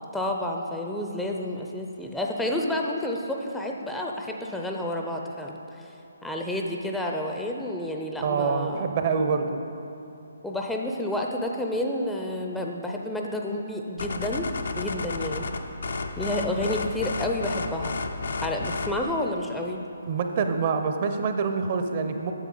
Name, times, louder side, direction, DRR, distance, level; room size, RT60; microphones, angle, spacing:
voice 1, 0.1-5.9 6.2-8.9 10.4-14.5 14.8-15.5 16.2-18.0 18.4-19.8, left 1 dB, 5° left, 0 dB, 0.5 m, -30 dB
voice 2, 8.2-9.6 20.1-22.3, right 5 dB, 40° right, 6 dB, 0.6 m, -26 dB
sound 1, 14.0-19.0, left 3 dB, 65° left, 0.6 m, -32 dB
9.3 x 7.1 x 3.9 m, 2.9 s
figure-of-eight pair, 140°, 0 cm